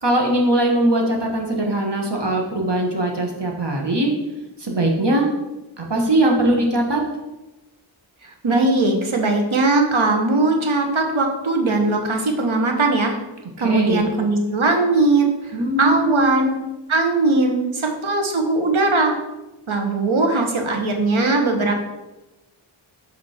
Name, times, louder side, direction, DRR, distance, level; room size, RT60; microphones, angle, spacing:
voice 1, 0.0-4.1 4.6-5.3 5.8-7.0 13.6-14.0 15.5-16.2, right 1 dB, 60° right, 1 dB, 1.5 m, -20 dB
voice 2, 8.4-13.2 13.6-15.3 15.8-16.6 16.9-19.1 19.7-21.8, right 2 dB, 75° right, 3 dB, 1.2 m, -19 dB
5.2 x 5.0 x 5.0 m, 1.0 s
wide cardioid pair, 60°, 49 cm